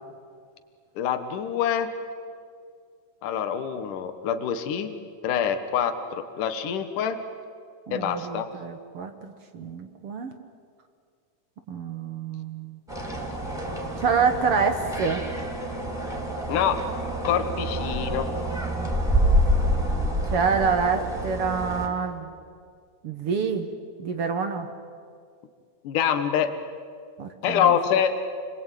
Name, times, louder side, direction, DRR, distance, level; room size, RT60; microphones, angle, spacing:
voice 1, 1.0-1.9 3.2-4.9 5.2-7.2 7.9-8.5 16.5-16.8 17.2-18.3 25.8-26.5 27.4-28.2, left 8 dB, 80° left, 8 dB, 2.8 m, -25 dB
voice 2, 7.9-10.3 11.7-12.8 14.0-15.2 18.8-18.9 20.3-22.3 23.0-23.7 24.0-24.7 27.2-27.8, right 5 dB, 55° right, 7 dB, 1.8 m, -27 dB
sound 1, 12.9-21.9, equal, ahead, 3.3 m, -27 dB
29.5 x 21.5 x 9.1 m, 2.2 s
omnidirectional pair, 3.6 m